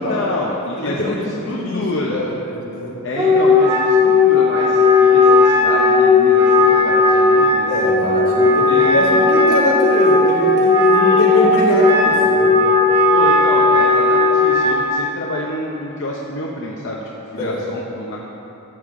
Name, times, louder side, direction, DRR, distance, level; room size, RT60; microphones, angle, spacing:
voice 1, 0.0-2.4 3.0-7.7 8.0-8.2 8.7-9.1 10.9-11.5 13.1-17.0 17.3-18.2, left 2 dB, 60° left, -3 dB, 0.8 m, -27 dB
voice 2, 0.8-1.2 1.5-1.8 2.1-2.9 7.7-12.6 17.4-17.6, left 1 dB, 80° left, -5 dB, 2.4 m, -22 dB
Wind instrument woodwind instrument, 3.1-14.8, left 3 dB, 20° right, 1.5 m, -14 dB
13.5 x 8.3 x 3.8 m, 2.9 s
head